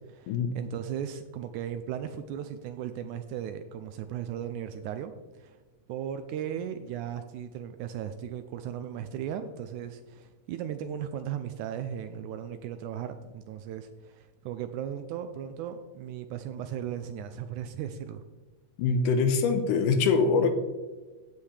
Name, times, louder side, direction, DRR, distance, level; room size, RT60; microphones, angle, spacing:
voice 1, 0.1-5.6 5.9-18.2, right 9 dB, 80° right, 9 dB, 1.9 m, -37 dB
voice 2, 18.8-20.5, left 4 dB, 80° left, 7 dB, 2.3 m, -24 dB
15.5 x 5.7 x 3.3 m, 1.2 s
omnidirectional pair, 3.6 m